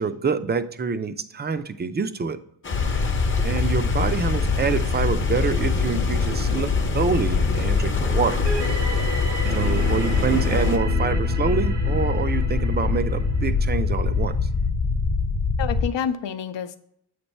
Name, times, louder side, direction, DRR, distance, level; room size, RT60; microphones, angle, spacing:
voice 1, 0.0-2.4 3.4-8.4 9.6-14.4, right 5 dB, 25° right, 11 dB, 0.3 m, -26 dB
sound 1, 2.6-10.8, left 3 dB, 30° left, 0.6 m, -32 dB
sound 2, 2.7-15.9, left 4 dB, 60° left, 0.8 m, -23 dB
sound 3, 8.3-14.0, right 2 dB, 70° right, 1.1 m, -31 dB
voice 2, 15.6-16.8, left 8 dB, 90° left, 10 dB, 0.6 m, -29 dB
7.9 x 3.3 x 4.1 m, 0.71 s
wide cardioid pair, 100°, 42 cm